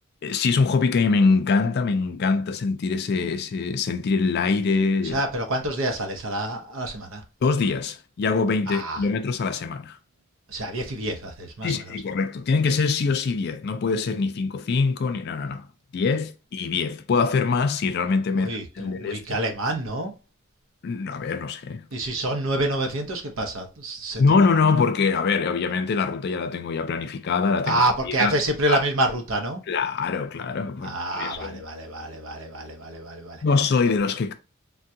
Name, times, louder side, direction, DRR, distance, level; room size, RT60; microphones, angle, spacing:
voice 1, 0.2-5.2 7.4-10.0 11.6-15.7 15.9-18.5 18.8-19.2 20.8-21.8 24.2-27.8 28.2-28.3 28.7-28.8 29.7-31.6 33.4-34.3, left 4 dB, 50° left, 0.4 m, -23 dB
voice 2, 5.0-7.2 8.7-9.1 10.5-11.9 18.3-20.2 21.9-24.2 27.7-29.6 30.8-33.4, right 1 dB, 70° right, 0.7 m, -27 dB
3.5 x 2.2 x 2.7 m
head